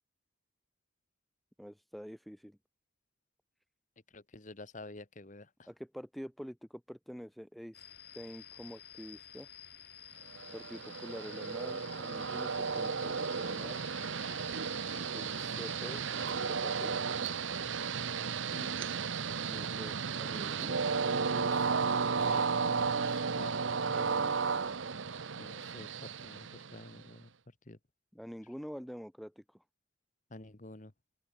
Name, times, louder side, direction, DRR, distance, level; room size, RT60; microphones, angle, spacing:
voice 1, 1.6-2.6 5.7-7.8 8.1-9.5 10.5-13.9 15.1-17.0 19.5-20.8 28.1-29.6, equal, ahead, 1.2 m, -46 dB
voice 2, 4.1-5.7 18.5-18.7 20.8-21.7 22.2-24.4 25.4-27.3 27.7-27.8 30.3-30.9, left 2 dB, 40° left, 1.4 m, -50 dB
sound 1, 7.7-24.4, left 9 dB, 55° left, 5.7 m, -54 dB
Train, 10.4-27.1, right 5 dB, 85° right, 0.9 m, -34 dB
open air
head